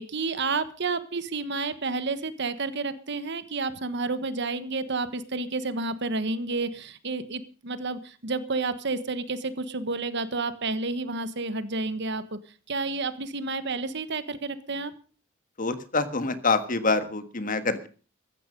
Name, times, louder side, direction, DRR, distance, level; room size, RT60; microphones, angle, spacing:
voice 1, 0.0-12.4 12.7-14.9, right 3 dB, 60° right, 12 dB, 1.4 m, -30 dB
voice 2, 15.6-17.9, left 3 dB, 40° left, 10 dB, 1.6 m, -26 dB
15.5 x 13.0 x 5.3 m, 0.38 s
head